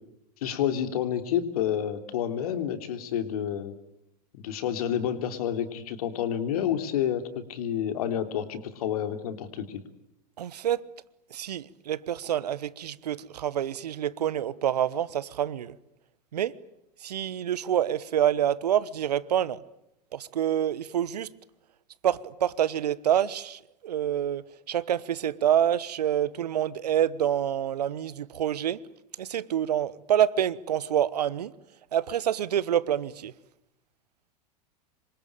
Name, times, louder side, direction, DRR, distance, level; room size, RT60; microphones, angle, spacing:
voice 1, 0.4-3.7 4.3-9.8, left 9 dB, 60° left, 3.3 m, -29 dB
voice 2, 10.4-10.8 11.3-15.7 16.3-16.5 17.0-19.6 20.1-21.3 22.0-28.8 29.2-31.5 31.9-33.3, right 10 dB, 70° right, 1.2 m, -27 dB
27.0 x 24.5 x 8.9 m
figure-of-eight pair, 90°, 21 cm